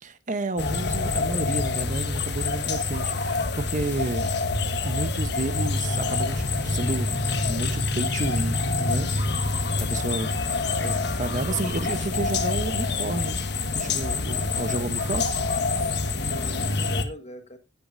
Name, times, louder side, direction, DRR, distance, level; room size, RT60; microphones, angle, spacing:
voice 1, 0.0-4.3 4.8-9.5 9.8-10.4 10.8-13.4 13.7-15.3, right 2 dB, 40° right, 0.9 m, -31 dB
sound 1, 0.6-17.0, left 3 dB, 60° left, 1.2 m, -26 dB
voice 2, 11.3-12.0 16.2-17.6, equal, 35° left, 1.5 m, -42 dB
15.5 x 8.2 x 2.7 m
head